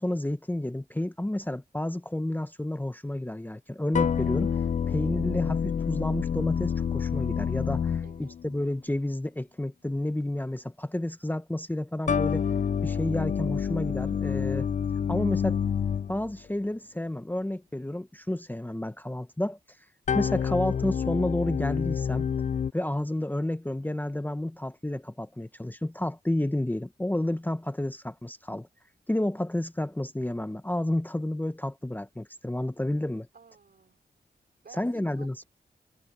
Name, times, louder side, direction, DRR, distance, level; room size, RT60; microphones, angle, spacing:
voice 1, 0.0-12.5 12.8-14.7 15.1-15.6 16.1-19.6 20.1-22.2 22.7-28.7 29.1-33.3 34.8-35.4, left 1 dB, 10° left, 0.8 m, -30 dB
sound 1, 3.9-8.6 12.1-16.4 20.1-22.7, left 7 dB, 45° left, 0.4 m, -28 dB
voice 2, 8.0-8.4 33.3-34.0 34.6-35.5, right 5 dB, 60° right, 3.7 m, -53 dB
cardioid pair, 70°, 18 cm